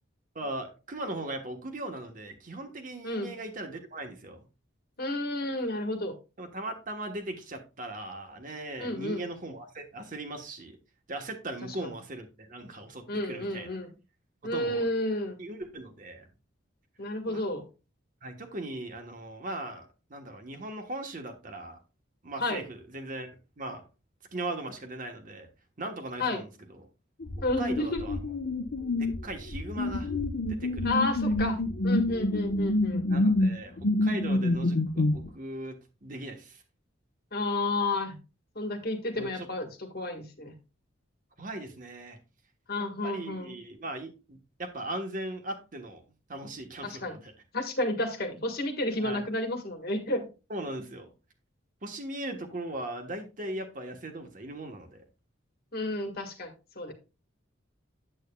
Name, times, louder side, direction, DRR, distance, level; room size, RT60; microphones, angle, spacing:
voice 1, 0.3-4.5 6.4-10.8 11.1-13.7 14.4-14.9 15.4-16.3 17.3-17.4 18.2-21.8 22.2-23.3 23.6-23.8 24.3-25.5 25.8-26.9 27.6-28.2 29.0-30.1 30.5-31.5 33.1-36.6 39.1-39.5 41.4-42.2 43.0-46.0 46.3-47.3 49.0-49.2 50.5-51.1 51.8-55.0, right 1 dB, 45° right, 5 dB, 1.2 m, -39 dB
voice 2, 5.0-6.2 8.8-9.2 11.8-11.9 13.1-13.9 14.4-15.4 17.0-17.6 22.4-22.6 26.2-26.4 27.4-28.0 30.8-31.6 31.8-33.0 37.3-38.2 38.5-40.5 42.7-43.6 46.8-47.2 47.5-50.3 55.7-56.9, left 2 dB, 50° left, 5 dB, 1.5 m, -31 dB
sound 1, 27.2-35.3, left 2 dB, 75° left, 1.0 m, -27 dB
8.8 x 8.0 x 2.3 m, 0.31 s
head